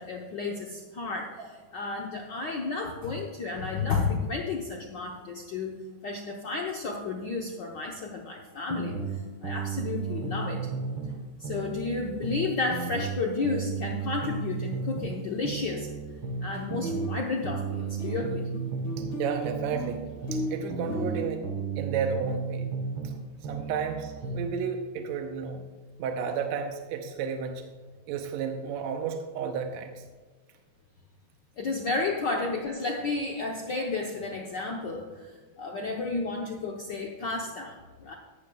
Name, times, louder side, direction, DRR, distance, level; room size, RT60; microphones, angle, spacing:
voice 1, 0.0-9.0 9.4-10.7 11.4-15.9 16.4-18.5 31.6-38.1, left 3 dB, 80° left, 0 dB, 0.9 m, -32 dB
sound 1, 8.7-11.2 11.4-15.2 15.4-19.2 19.4-23.2 23.4-24.5, right 4 dB, 55° right, 1.6 m, -34 dB
sound 2, 15.3-15.4 15.7-16.3 16.5-21.3, equal, 45° left, 2.0 m, -36 dB
voice 2, 19.2-20.0 20.3-21.4 21.8-22.6 23.4-25.7 26.0-27.7 28.1-30.0, right 6 dB, 75° right, 5 dB, 1.9 m, -32 dB
15.0 x 11.5 x 2.3 m, 1.5 s
omnidirectional pair, 3.3 m